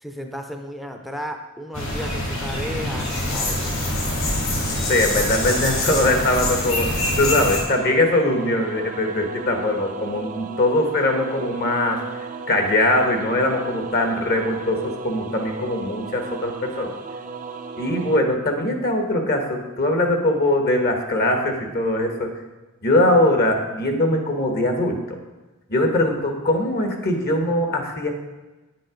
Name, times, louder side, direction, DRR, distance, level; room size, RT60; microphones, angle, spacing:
voice 1, 0.0-4.0, equal, ahead, 4 dB, 0.7 m, -34 dB
sound 1, 1.7-7.6, left 1 dB, 65° left, 3.9 m, -25 dB
voice 2, 4.9-12.0 12.5-16.9 17.8-22.3 22.8-25.0 25.7-28.1, left 1 dB, 45° left, 4 dB, 1.5 m, -21 dB
sound 2, 6.9-18.2, right 4 dB, 40° right, 0.6 m, -35 dB
9.6 x 7.7 x 5.1 m, 1.1 s
head